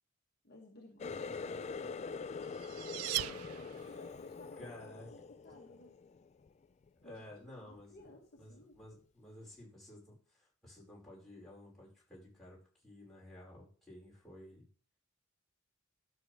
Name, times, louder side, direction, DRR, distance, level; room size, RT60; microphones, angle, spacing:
voice 1, 0.4-2.2 3.3-5.9 7.0-7.2 7.6-8.8, left 1 dB, 50° left, -1 dB, 1.6 m, -57 dB
Water tap faucet, 1.0-6.5 6.9-7.3 7.8-8.1 8.8-8.9, left 5 dB, 30° left, 0.3 m, -44 dB
sound 1, 2.1-4.2, right 15 dB, 85° right, 0.4 m, -40 dB
voice 2, 4.6-5.1 7.0-8.1 8.4-12.6 12.8-14.6, left 1 dB, ahead, -7 dB, 5.1 m, -53 dB
12.0 x 6.4 x 3.4 m, 0.41 s
head